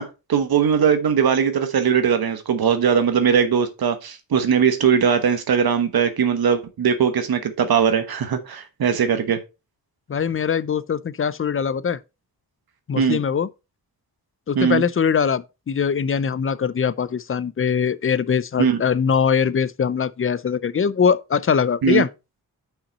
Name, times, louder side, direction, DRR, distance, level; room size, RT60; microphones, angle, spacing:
voice 1, 0.0-9.4 12.9-13.2 14.5-14.8 18.6-18.8 21.8-22.0, right 7 dB, 85° right, 1.1 m, -20 dB
voice 2, 10.1-12.0 12.9-13.5 14.5-22.1, left 7 dB, 35° left, 0.5 m, -22 dB
5.9 x 5.7 x 4.1 m
wide cardioid pair, 90°, 36 cm